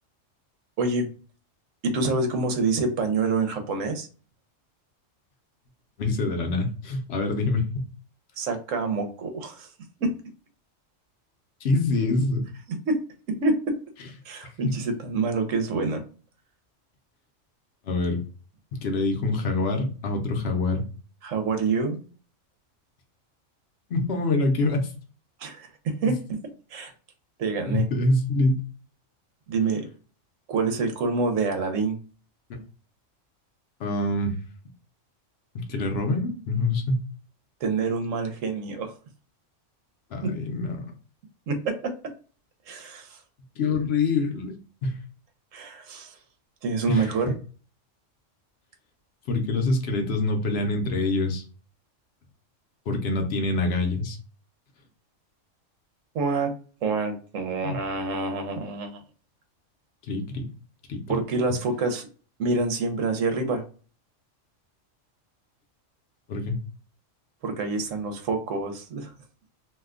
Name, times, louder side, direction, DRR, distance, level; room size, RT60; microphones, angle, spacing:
voice 1, 0.8-1.1 1.8-4.1 8.4-9.7 10.0-10.1 12.9-13.0 13.4-13.8 14.2-16.0 21.2-22.0 25.4-26.1 26.7-26.9 27.4-27.9 29.5-29.9 30.5-32.0 37.6-38.9 40.2-40.3 41.5-41.9 42.7-43.2 45.5-46.2 46.6-47.3 56.1-56.5 56.8-59.0 61.1-62.1 62.4-63.6 67.4-69.1, right 3 dB, 80° right, 5 dB, 1.1 m, -27 dB
voice 2, 6.0-7.9 11.6-12.5 14.6-14.8 17.8-18.2 18.7-20.9 23.9-24.9 26.1-26.2 27.7-28.6 33.8-34.3 35.5-37.0 40.1-40.8 43.6-44.5 44.8-45.0 46.9-47.1 49.3-51.4 52.9-54.2 57.6-57.8 60.1-60.5 60.9-61.2 66.3-66.6, left 2 dB, 60° left, 3 dB, 0.9 m, -25 dB
2.7 x 2.2 x 3.6 m, 0.37 s
omnidirectional pair, 1.3 m